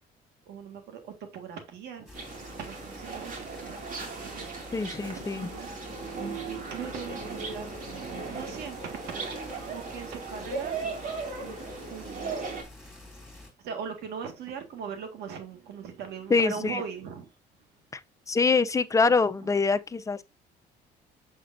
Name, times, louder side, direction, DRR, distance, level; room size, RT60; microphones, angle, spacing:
voice 1, 0.4-2.1 2.6-4.5 4.8-5.7 6.5-7.7 8.3-10.8 11.4-12.3 13.6-17.7 19.4-19.5, right 7 dB, 75° right, 1.7 m, -40 dB
sound 1, 2.1-13.5, left 2 dB, 5° right, 2.6 m, -48 dB
sound 2, 2.1-12.6, right 4 dB, 55° right, 2.4 m, -37 dB
voice 2, 4.7-5.5 16.3-16.8 18.3-20.2, left 4 dB, 20° left, 0.5 m, -24 dB
6.8 x 6.5 x 2.5 m
cardioid pair, 110°, 17 cm